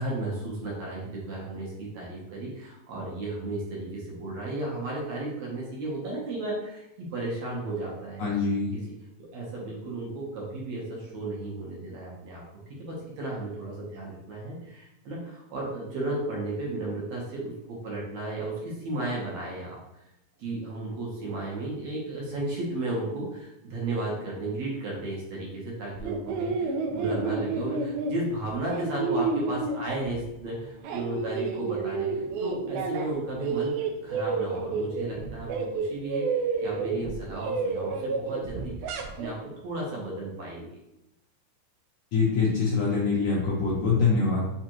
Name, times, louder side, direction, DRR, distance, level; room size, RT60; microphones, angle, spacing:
voice 1, 0.0-8.3 8.7-8.8 9.2-12.4 12.7-19.8 20.4-33.7 34.0-36.3 36.6-40.7, right 2 dB, 65° right, -4 dB, 1.9 m, -34 dB
voice 2, 8.2-8.7 42.1-44.5, left 4 dB, 70° left, -5 dB, 1.6 m, -24 dB
sound 1, 26.0-30.3 30.7-33.1 33.4-39.3, right 4 dB, 80° right, 1.8 m, -30 dB
6.9 x 2.5 x 3.0 m, 0.86 s
omnidirectional pair, 4.0 m